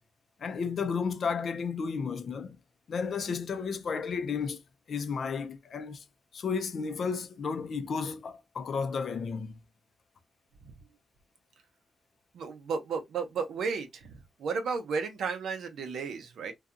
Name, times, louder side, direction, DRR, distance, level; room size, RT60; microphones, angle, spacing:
voice 1, 0.4-2.6 2.9-4.6 4.9-6.0 6.3-9.5, left 5 dB, 65° left, 0.5 m, -33 dB
voice 2, 12.3-14.1 14.4-16.5, right 5 dB, 85° right, 0.6 m, -33 dB
2.6 x 2.3 x 2.4 m
cardioid pair, 70°, 0 cm